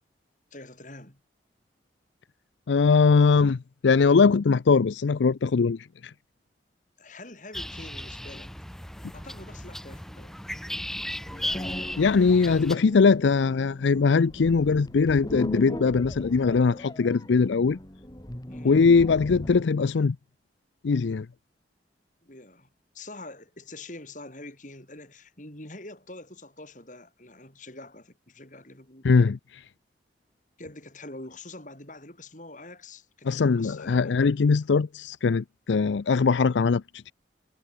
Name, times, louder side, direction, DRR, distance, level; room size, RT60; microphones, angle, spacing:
voice 1, 0.5-1.2 7.0-8.5 9.1-10.4 18.5-18.9 22.2-22.7 22.9-29.1 30.6-34.2, left 2 dB, 45° left, 7.3 m, -45 dB
voice 2, 2.7-6.1 12.0-17.8 18.6-20.2 20.8-21.3 29.0-29.6 33.2-37.1, left 4 dB, 90° left, 0.5 m, -21 dB
sound 1, 7.5-12.8, left 1 dB, ahead, 0.5 m, -36 dB
sound 2, 11.2-19.8, equal, 20° left, 1.9 m, -39 dB
head